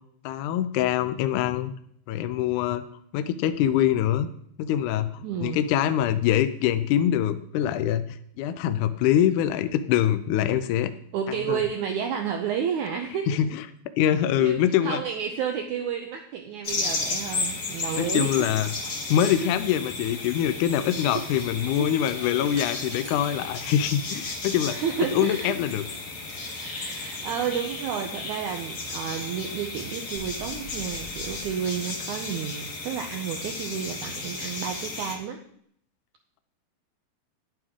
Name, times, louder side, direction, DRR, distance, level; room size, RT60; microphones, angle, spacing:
voice 1, 0.2-1.7 2.1-2.8 3.1-4.3 4.6-8.0 8.4-10.9 11.5-11.6 13.3-13.6 14.0-15.0 18.0-18.7 19.1-24.8 25.1-25.8, left 10 dB, 80° left, 10 dB, 1.8 m, -24 dB
voice 2, 5.2-5.6 11.1-13.3 14.4-18.5 19.0-19.5 21.1-21.4 21.7-21.9 24.6-25.5 26.4-35.4, right 8 dB, 80° right, 4 dB, 1.8 m, -31 dB
sound 1, 16.6-35.1, left 3 dB, 60° left, 1.0 m, -34 dB
sound 2, 22.6-23.5 23.9-24.7, right 2 dB, 40° right, 2.0 m, -47 dB
sound 3, 30.1-31.4, left 3 dB, 40° left, 1.1 m, -44 dB
10.5 x 9.2 x 3.7 m, 0.66 s
omnidirectional pair, 4.3 m